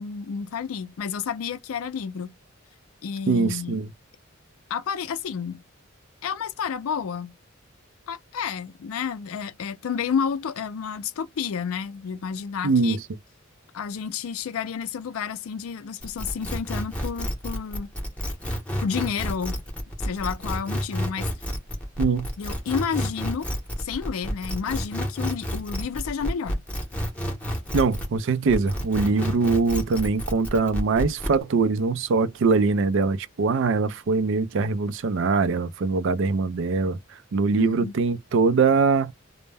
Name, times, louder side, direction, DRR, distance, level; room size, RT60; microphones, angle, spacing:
voice 1, 0.0-2.3 3.0-3.8 4.7-5.6 6.2-7.3 8.1-13.0 13.7-17.9 18.8-19.6 20.0-21.3 22.4-23.5 23.8-26.6 37.6-37.9, left 6 dB, 85° left, 0.4 m, -30 dB
voice 2, 3.3-3.9 12.6-13.0 22.0-22.3 27.7-37.0 37.3-39.1, right 4 dB, 60° right, 0.4 m, -22 dB
sound 1, 16.0-28.2 28.5-31.4, equal, 5° left, 0.7 m, -30 dB
2.1 x 2.0 x 3.3 m
head